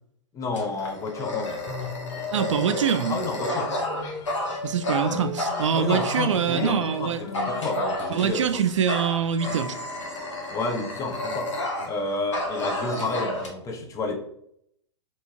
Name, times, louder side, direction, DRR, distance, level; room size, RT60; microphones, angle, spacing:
voice 1, 0.3-1.6 3.1-3.8 5.7-8.6 10.5-11.5 11.8-14.2, left 3 dB, 20° left, 2 dB, 0.7 m, -30 dB
Dog, 0.5-6.7 7.3-8.5 8.9-12.0 12.3-13.5, left 1 dB, 85° left, 1.1 m, -31 dB
sound 1, 1.5-8.3, left 5 dB, 55° left, 1.3 m, -38 dB
voice 2, 2.3-3.2 4.6-7.2 8.1-9.8, right 8 dB, 80° right, 9 dB, 0.4 m, -24 dB
sound 2, 4.8-7.4 8.1-9.1 9.3-11.1 11.8-13.2, equal, 5° right, 1.0 m, -42 dB
3.5 x 2.9 x 2.9 m, 0.72 s
hypercardioid pair, 115°, 15 cm